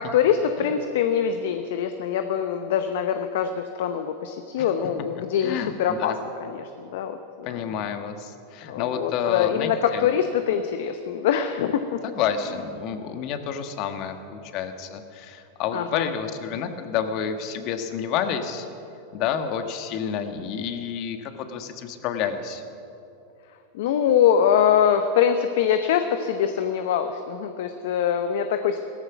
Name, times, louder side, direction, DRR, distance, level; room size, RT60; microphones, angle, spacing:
voice 1, 0.0-6.1 6.4-7.7 8.7-12.0 15.7-16.1 23.7-28.8, left 8 dB, 65° left, 8 dB, 0.8 m, -24 dB
voice 2, 5.4-6.2 7.4-10.1 12.0-18.7 19.1-22.6, left 8 dB, 50° left, 7 dB, 1.5 m, -29 dB
17.0 x 14.0 x 6.0 m, 2.7 s
hypercardioid pair, 95°, 0 cm